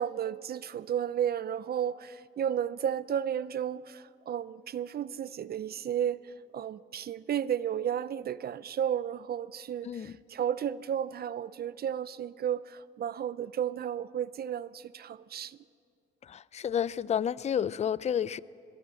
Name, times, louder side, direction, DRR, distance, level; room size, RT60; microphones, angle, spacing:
voice 1, 0.0-6.2 6.5-15.6, right 9 dB, 50° right, 0.6 m, -33 dB
voice 2, 9.8-10.2 16.2-18.4, left 8 dB, 35° left, 0.5 m, -30 dB
23.0 x 22.0 x 7.7 m
cardioid pair, 90°, 20 cm